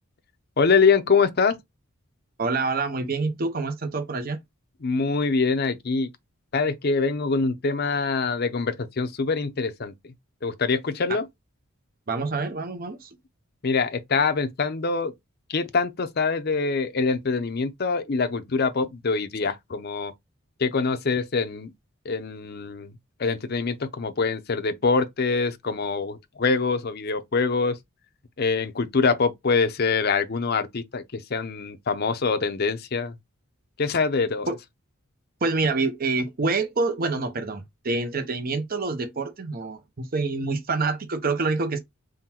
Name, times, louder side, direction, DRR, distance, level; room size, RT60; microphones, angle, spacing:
voice 1, 0.6-1.6 4.8-6.1 6.5-10.1 10.4-11.3 13.6-15.1 15.5-20.1 20.6-21.7 22.0-22.9 23.2-27.8 28.4-33.2 33.8-34.5, left 4 dB, 50° left, 0.6 m, -24 dB
voice 2, 2.4-4.4 11.1-11.2 12.1-13.1 34.5-34.6 35.4-41.8, right 3 dB, 45° right, 0.7 m, -27 dB
3.8 x 2.2 x 4.3 m
head